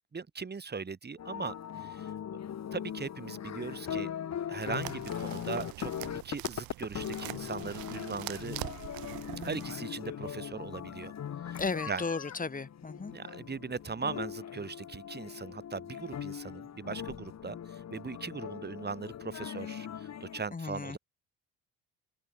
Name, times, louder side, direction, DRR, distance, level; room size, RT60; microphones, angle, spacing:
voice 1, 0.1-1.5 1.8-2.1 2.7-4.1 4.5-5.9 6.2-8.6 9.4-11.1 11.4-12.0 13.1-21.0, right 5 dB, 30° right, 7.9 m, -39 dB
sound 1, 1.2-20.4, left 9 dB, 45° left, 5.1 m, -40 dB
sound 2, 4.6-9.7, right 20 dB, 75° right, 3.8 m, -43 dB
voice 2, 11.6-13.1 20.5-21.0, left 4 dB, 25° left, 5.4 m, -35 dB
open air
supercardioid pair, 90°, 36 cm